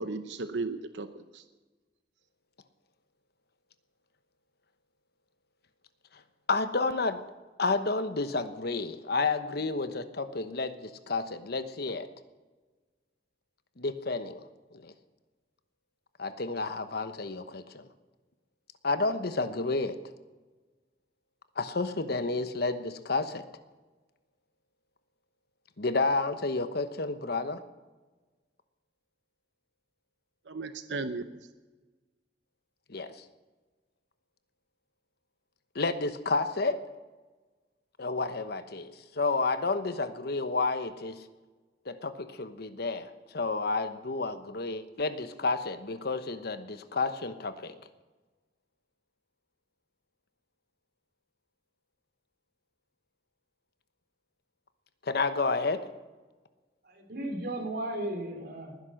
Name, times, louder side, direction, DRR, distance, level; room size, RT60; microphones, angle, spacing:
voice 1, 0.0-1.4 30.5-31.4, right 3 dB, 85° right, 10 dB, 0.8 m, -35 dB
voice 2, 6.5-7.2 7.6-12.1 13.8-14.4 14.7-14.9 16.2-17.9 18.8-20.0 21.6-23.4 25.8-27.6 32.9-33.2 35.7-36.8 38.0-41.2 41.9-47.7 55.0-55.8, left 3 dB, 60° left, 11 dB, 1.0 m, -30 dB
voice 3, 56.8-58.7, right 1 dB, 60° right, 3 dB, 3.3 m, -35 dB
20.0 x 10.5 x 6.4 m, 1.3 s
head